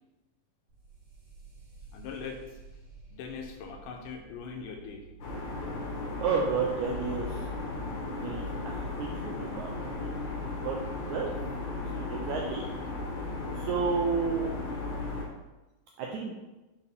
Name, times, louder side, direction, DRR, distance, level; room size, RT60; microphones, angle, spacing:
sound 1, 0.7-11.4, right 3 dB, 55° right, 3.5 m, -53 dB
voice 1, 1.9-2.6 3.1-5.1, left 6 dB, 75° left, 3 dB, 2.1 m, -41 dB
sound 2, 5.2-15.2, left 2 dB, 60° left, 1.4 m, -35 dB
voice 2, 6.2-7.5 8.2-10.1 10.6-10.8 11.1-11.3 11.9-12.7 13.6-14.6 16.0-16.4, right 5 dB, 85° right, 0 dB, 1.7 m, -31 dB
8.3 x 3.7 x 3.4 m, 1.1 s
omnidirectional pair, 4.0 m